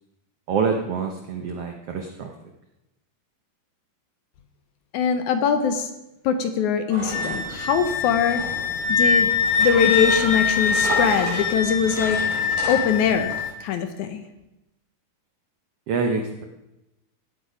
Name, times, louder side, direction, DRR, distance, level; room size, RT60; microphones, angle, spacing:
voice 1, 0.5-2.3 15.9-16.4, right 5 dB, 90° right, 4 dB, 1.3 m, -26 dB
voice 2, 4.9-5.9 6.2-8.4 8.9-9.3 9.6-12.2 12.7-13.3 13.6-14.3, left 7 dB, 70° left, 8 dB, 2.0 m, -22 dB
sound 1, 6.9-13.4, right 1 dB, 70° right, 6.2 m, -33 dB
Wind instrument woodwind instrument, 7.1-13.5, left 5 dB, 90° left, 3.1 m, -24 dB
17.0 x 8.2 x 5.0 m, 0.93 s
omnidirectional pair, 4.1 m